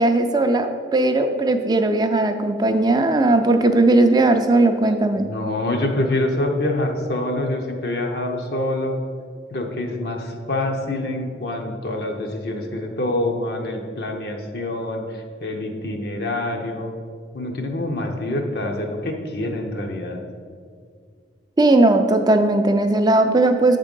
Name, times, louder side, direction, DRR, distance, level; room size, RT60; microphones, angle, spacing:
voice 1, 0.0-5.3 21.6-23.8, right 2 dB, 20° right, 6 dB, 0.4 m, -17 dB
voice 2, 5.2-9.0 9.5-16.9 17.3-20.2, left 1 dB, 55° left, 2 dB, 0.7 m, -26 dB
7.9 x 3.7 x 5.2 m, 2.1 s
head